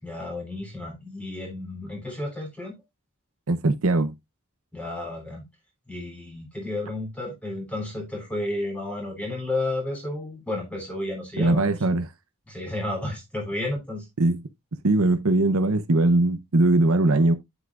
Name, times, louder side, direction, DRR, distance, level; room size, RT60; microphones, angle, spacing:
voice 1, 0.0-2.8 4.7-5.5 5.9-11.6 12.5-14.1, left 2 dB, 5° left, 3.3 m, -32 dB
voice 2, 3.5-4.1 11.4-12.1 14.2-14.4 14.8-17.3, right 2 dB, 75° right, 0.8 m, -20 dB
9.1 x 8.0 x 2.5 m
head